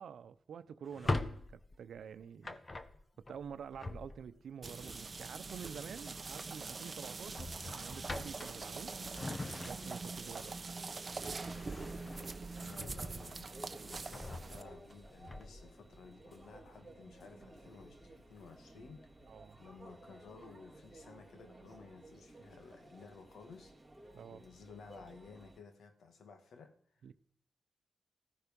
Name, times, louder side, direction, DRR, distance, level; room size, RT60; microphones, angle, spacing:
voice 1, 0.0-2.6 3.2-8.9 9.6-10.6 19.3-19.6 24.1-24.4 27.0-27.1, right 7 dB, 80° right, 0.8 m, -48 dB
Drawer open or close, 0.8-4.5 6.0-6.3 6.6-6.8 7.3-10.2 10.6-13.4 13.8-15.7, left 2 dB, 30° left, 1.2 m, -43 dB
sound 1, 4.6-14.6, right 4 dB, 35° right, 0.9 m, -44 dB
Conversation / Chatter / Crowd, 7.2-25.6, right 1 dB, 5° right, 3.6 m, -57 dB
voice 2, 10.3-10.6 12.6-13.5 13.8-19.1 19.6-23.8 24.3-27.1, left 5 dB, 90° left, 2.0 m, -55 dB
15.0 x 14.5 x 5.4 m
cardioid pair, 95°, 0 cm